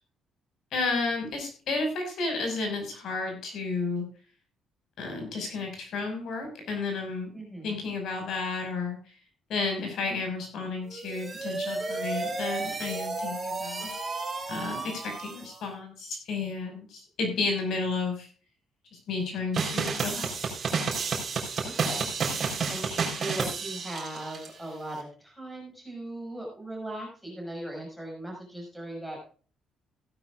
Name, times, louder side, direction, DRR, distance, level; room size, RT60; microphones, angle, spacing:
voice 1, 0.7-4.1 5.0-7.3 7.6-9.0 9.5-13.9 14.5-18.3 18.9-20.5, left 3 dB, 55° left, 4 dB, 5.3 m, -32 dB
voice 2, 7.3-7.7 21.6-22.1 22.3-29.2, right 1 dB, ahead, -1 dB, 5.6 m, -39 dB
sound 1, 10.9-15.7, right 3 dB, 15° right, 3.1 m, -34 dB
sound 2, 19.5-24.5, right 5 dB, 30° right, 3.8 m, -30 dB
16.0 x 12.5 x 2.4 m, 0.40 s
cardioid pair, 170°, 0 cm